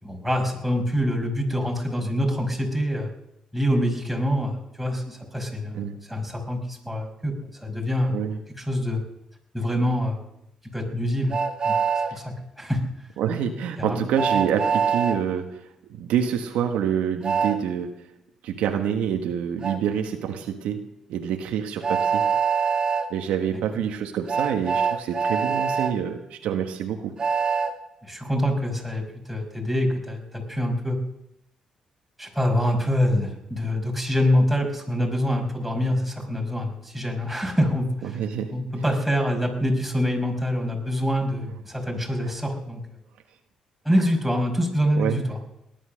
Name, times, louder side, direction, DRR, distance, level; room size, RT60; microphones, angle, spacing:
voice 1, 0.0-3.1 3.5-8.1 8.6-9.0 9.5-10.2 10.7-11.4 11.6-11.7 12.1-12.8 13.8-14.1 28.0-31.0 32.2-38.0 38.5-42.8 43.9-45.4, equal, ahead, 0 dB, 5.2 m, -25 dB
Train, 11.3-12.1 14.1-15.2 17.2-17.6 19.6-19.8 21.8-23.0 24.3-25.9 27.2-27.7, right 6 dB, 40° right, 2.1 m, -23 dB
voice 2, 13.2-17.9 18.4-22.3 23.1-27.1 38.0-38.6 44.9-45.3, right 8 dB, 85° right, 4 dB, 1.5 m, -27 dB
19.0 x 11.0 x 6.5 m, 0.84 s
cardioid pair, 75°, 2 cm